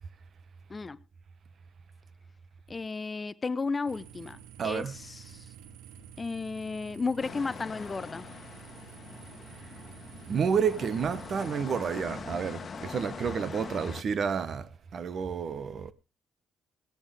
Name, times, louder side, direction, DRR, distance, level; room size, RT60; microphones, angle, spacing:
voice 1, 2.7-5.5 6.2-8.3, left 4 dB, 30° left, 0.7 m, -34 dB
sound 1, 3.9-11.5, right 10 dB, 90° right, 1.1 m, -50 dB
voice 2, 4.6-4.9 10.3-15.9, right 6 dB, 55° right, 1.1 m, -30 dB
sound 2, 7.2-14.0, left 6 dB, 45° left, 1.2 m, -43 dB
17.5 x 11.0 x 3.5 m
cardioid pair, 80°, 0 cm